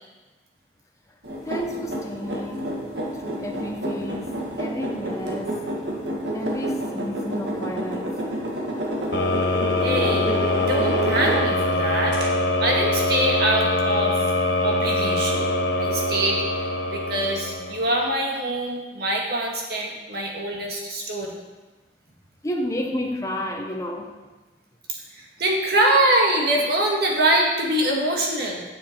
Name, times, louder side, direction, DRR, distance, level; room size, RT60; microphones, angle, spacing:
sound 1, 1.2-11.7 12.1-12.2, right 1 dB, 85° right, 1.8 m, -29 dB
voice 1, 1.4-5.6 6.3-8.1 22.4-24.3, equal, 20° left, 2 dB, 1.0 m, -31 dB
sound 2, 9.1-18.0, left 1 dB, 70° left, 0.9 m, -23 dB
voice 2, 9.8-12.2 12.6-14.2 14.6-16.4 16.9-21.4 25.1-28.6, right 1 dB, 60° right, -1 dB, 1.9 m, -24 dB
9.2 x 7.5 x 4.6 m, 1.2 s
head